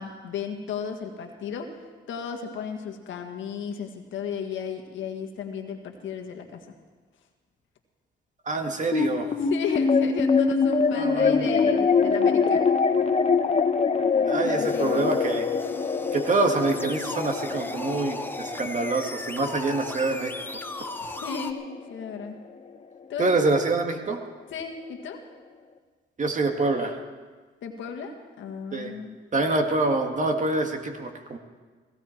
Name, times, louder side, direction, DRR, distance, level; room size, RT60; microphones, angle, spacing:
voice 1, 0.0-1.8 2.1-6.7 9.0-12.7 14.0-15.2 21.0-22.4 23.1-23.3 24.5-25.2 27.6-29.2, left 7 dB, 75° left, 4 dB, 1.7 m, -35 dB
voice 2, 8.5-9.3 11.0-11.4 14.3-15.5 16.1-20.3 23.2-24.2 26.2-27.0 28.7-28.9 29.3-31.4, right 3 dB, 40° right, 4 dB, 1.8 m, -26 dB
sound 1, 8.9-21.5, left 5 dB, 35° left, 1.1 m, -24 dB
sound 2, 14.6-21.5, left 2 dB, 10° left, 0.9 m, -38 dB
17.0 x 16.0 x 4.5 m, 1.4 s
cardioid pair, 90°, 20 cm